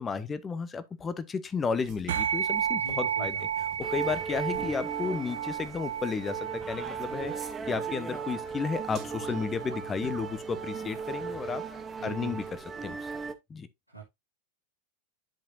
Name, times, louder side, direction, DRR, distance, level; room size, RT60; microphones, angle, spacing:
voice 1, 0.0-3.4 3.9-11.6 12.0-12.4 12.8-13.1 13.5-13.7, left 5 dB, 20° left, 0.8 m, -33 dB
sound 1, 1.8-5.9 6.1-6.2 6.6-10.6 12.2-13.2, right 7 dB, 35° right, 2.0 m, -54 dB
sound 2, 2.1-11.8, right 9 dB, 55° right, 0.8 m, -34 dB
voice 2, 2.7-3.8 4.3-4.4 9.3-9.5 12.0-12.4 13.9-14.0, right 2 dB, 90° right, 2.1 m, -43 dB
sound 3, 3.8-13.3, right 5 dB, 15° right, 0.9 m, -38 dB
10.5 x 5.0 x 2.6 m
figure-of-eight pair, 90°, 0 cm